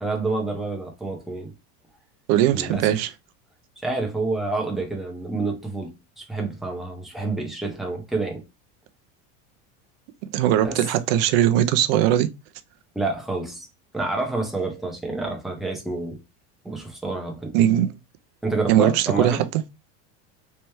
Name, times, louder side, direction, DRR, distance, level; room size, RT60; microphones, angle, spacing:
voice 1, 0.0-1.5 2.5-3.0 3.8-8.4 10.6-10.8 11.1-11.2 12.9-13.7 13.9-16.2 16.6-17.6 18.4-19.5, right 3 dB, ahead, 0.6 m, -28 dB
voice 2, 2.3-3.1 10.3-12.3 17.5-17.9 18.7-19.4, right 12 dB, 55° right, 0.5 m, -20 dB
3.3 x 3.2 x 2.9 m
cardioid pair, 170°, 36 cm